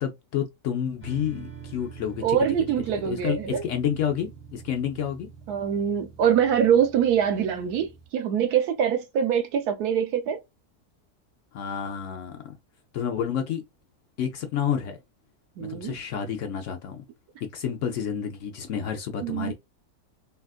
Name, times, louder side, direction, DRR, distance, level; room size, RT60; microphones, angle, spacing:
voice 1, 0.0-2.4 3.0-5.3 11.5-12.5 12.9-13.6 14.2-15.0 15.6-17.0 17.5-19.5, left 8 dB, 65° left, 0.8 m, -29 dB
sound 1, 1.0-8.1, right 6 dB, 10° right, 0.7 m, -45 dB
voice 2, 2.2-3.6 5.5-10.4 15.6-15.9 19.2-19.5, right 8 dB, 85° right, 1.2 m, -24 dB
3.4 x 2.3 x 2.3 m
omnidirectional pair, 1.6 m